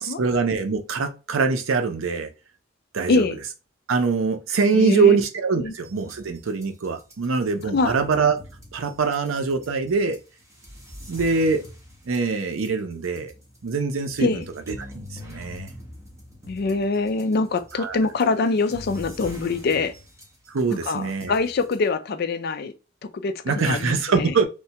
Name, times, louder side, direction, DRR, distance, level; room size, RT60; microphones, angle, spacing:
voice 1, 0.0-2.3 2.9-3.3 3.9-8.4 8.7-10.2 11.1-11.6 12.1-13.3 13.6-15.7 17.8-18.0 20.5-21.3 23.5-24.5, right 4 dB, 85° right, 0.6 m, -23 dB
voice 2, 4.7-5.2 5.6-5.7 7.6-8.0 14.2-14.4 16.5-19.9 20.7-22.7 23.1-24.3, left 3 dB, 55° left, 0.4 m, -24 dB
sound 1, 5.7-21.9, left 1 dB, 15° right, 1.1 m, -44 dB
3.2 x 2.1 x 2.8 m
head